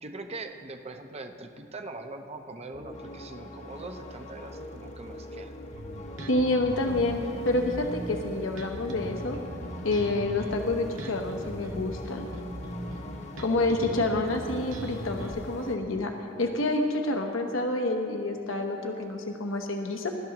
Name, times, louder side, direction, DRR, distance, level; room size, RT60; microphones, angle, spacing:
voice 1, 0.0-5.5, right 2 dB, 30° right, 6 dB, 0.7 m, -41 dB
sound 1, 2.7-15.8, left 1 dB, 35° left, 0.9 m, -42 dB
Bass guitar, 5.7-15.3, equal, 85° right, 1.7 m, -39 dB
voice 2, 6.3-7.2 7.4-9.4 9.8-12.3 13.4-16.1 16.4-20.1, left 2 dB, 70° left, 3 dB, 1.0 m, -28 dB
22.5 x 12.5 x 3.0 m, 2.7 s
head